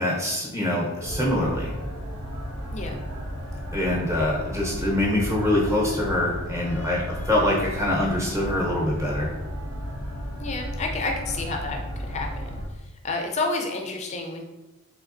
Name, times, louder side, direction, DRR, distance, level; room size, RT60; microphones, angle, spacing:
voice 1, 0.0-1.7 3.7-9.3, left 1 dB, 15° right, -3 dB, 0.7 m, -24 dB
sound 1, 1.0-12.7, equal, 80° right, 1.0 m, -33 dB
voice 2, 10.4-11.8 12.1-12.6 13.0-14.4, left 3 dB, 30° left, 2 dB, 0.4 m, -29 dB
3.4 x 3.3 x 2.5 m, 1.0 s
head